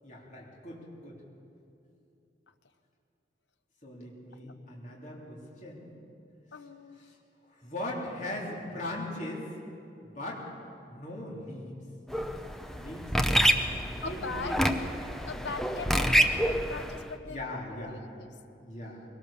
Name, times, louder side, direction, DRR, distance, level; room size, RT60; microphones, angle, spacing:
voice 1, 0.0-1.2 3.8-5.9 7.6-9.5 10.0-10.4 10.9-11.7 12.8-14.8 17.2-18.0 18.5-19.0, left 1 dB, 45° left, -3 dB, 3.3 m, -40 dB
voice 2, 6.5-7.1 14.0-14.7 15.2-18.3, left 4 dB, 85° left, 8 dB, 1.2 m, -40 dB
sound 1, 12.1-17.0, equal, ahead, 0.8 m, -27 dB
22.0 x 18.0 x 7.2 m, 2.7 s
head